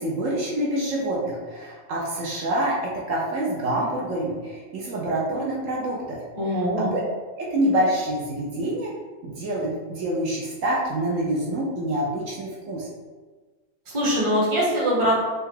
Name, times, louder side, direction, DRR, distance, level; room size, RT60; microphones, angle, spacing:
voice 1, 0.0-6.2 6.4-7.0 7.4-8.9 9.2-12.9, right 1 dB, 65° right, -4 dB, 1.1 m, -26 dB
voice 2, 6.4-6.9 13.9-15.2, equal, 25° right, -5 dB, 1.1 m, -22 dB
5.5 x 2.4 x 3.7 m, 1.3 s
omnidirectional pair, 1.5 m